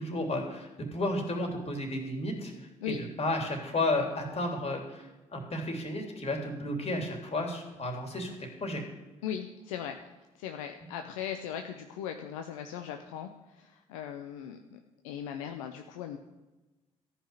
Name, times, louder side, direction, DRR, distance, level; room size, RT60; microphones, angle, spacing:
voice 1, 0.0-2.5 2.9-5.1 5.3-8.3 8.6-8.8 10.8-10.9, left 1 dB, 40° left, 2 dB, 3.3 m, -32 dB
voice 2, 9.2-10.0 10.4-13.3 13.6-14.8 15.0-16.2, left 9 dB, 75° left, 5 dB, 0.7 m, -38 dB
14.0 x 5.9 x 8.3 m, 1.1 s
figure-of-eight pair, 45°, 17 cm